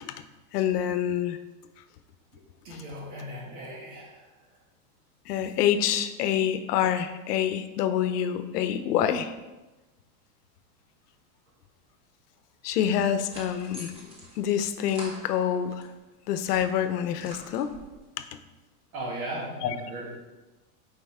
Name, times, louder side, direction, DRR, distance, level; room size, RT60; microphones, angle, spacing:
voice 1, 0.5-1.4 2.7-2.8 5.3-9.3 12.6-15.9 16.3-17.7 18.2-18.3 19.6-19.8, left 9 dB, 90° left, 11 dB, 0.8 m, -27 dB
voice 2, 2.6-4.2 18.9-20.1, right 1 dB, 65° right, -2 dB, 2.2 m, -37 dB
sound 1, 12.9-15.9 16.3-18.0, right 1 dB, 10° right, 0.7 m, -47 dB
7.6 x 5.0 x 3.6 m, 1.1 s
supercardioid pair, 170°, 46 cm